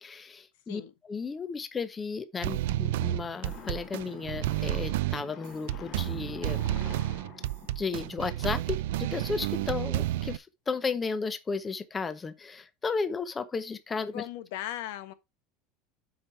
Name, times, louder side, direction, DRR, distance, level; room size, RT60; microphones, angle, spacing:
voice 1, 0.0-0.8 1.1-6.6 7.8-14.2, left 5 dB, 15° left, 0.7 m, -34 dB
sound 1, 2.4-10.4, right 15 dB, 85° right, 0.4 m, -31 dB
sound 2, 3.3-8.7, left 7 dB, 35° left, 1.5 m, -48 dB
voice 2, 14.1-15.1, left 13 dB, 70° left, 1.2 m, -37 dB
7.9 x 5.3 x 4.4 m
cardioid pair, 175°, 0 cm